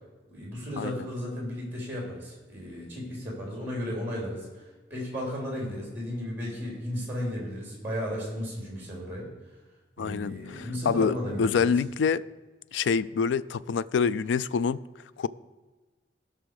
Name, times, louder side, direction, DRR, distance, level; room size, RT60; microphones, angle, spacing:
voice 1, 0.3-9.3 10.0-11.8, equal, 10° right, 3.6 m, -34 dB
voice 2, 10.0-12.2 12.7-14.8 15.2-15.3, left 6 dB, 80° left, 0.3 m, -26 dB
16.0 x 6.0 x 4.8 m
head